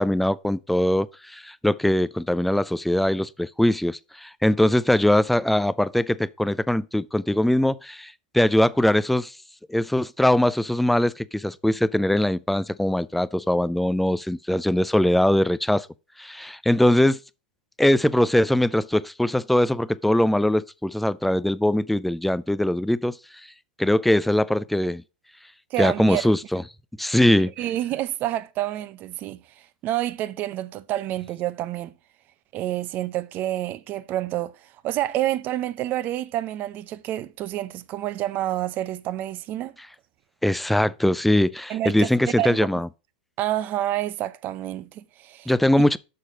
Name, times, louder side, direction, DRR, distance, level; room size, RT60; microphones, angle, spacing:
voice 1, 0.0-9.3 9.7-15.9 16.2-17.2 17.8-23.2 23.8-25.0 25.8-26.6 27.0-27.5 40.4-42.9 45.5-46.0, left 1 dB, ahead, 0.3 m, -21 dB
voice 2, 25.7-26.3 27.6-29.4 29.8-31.9 32.5-34.5 34.8-39.7 41.7-42.1 42.4-42.7 43.4-45.5, right 13 dB, 35° right, 0.6 m, -28 dB
6.5 x 5.8 x 4.9 m
hypercardioid pair, 125°, 6 cm